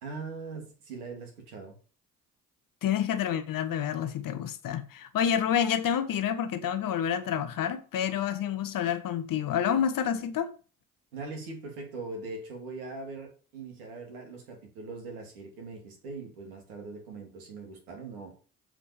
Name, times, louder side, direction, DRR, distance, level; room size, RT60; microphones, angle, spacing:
voice 1, 0.0-1.7 11.1-18.4, right 3 dB, 75° right, 2.7 m, -41 dB
voice 2, 2.8-10.5, left 9 dB, 45° left, 1.1 m, -28 dB
7.4 x 4.9 x 6.9 m
figure-of-eight pair, 45°, 45 cm